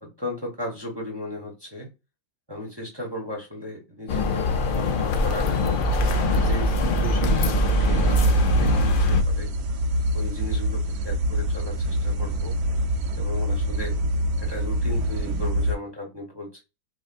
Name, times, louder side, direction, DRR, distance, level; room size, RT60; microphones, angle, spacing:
voice 1, 0.0-1.9 2.5-5.8 6.4-9.5 10.1-12.5 13.1-14.0 14.4-16.6, left 2 dB, 20° right, 0.8 m, -36 dB
sound 1, 4.1-9.2, left 4 dB, 75° left, 0.4 m, -24 dB
sound 2, 5.8-15.8, right 2 dB, 80° right, 1.1 m, -24 dB
4.9 x 2.1 x 2.5 m
omnidirectional pair, 1.6 m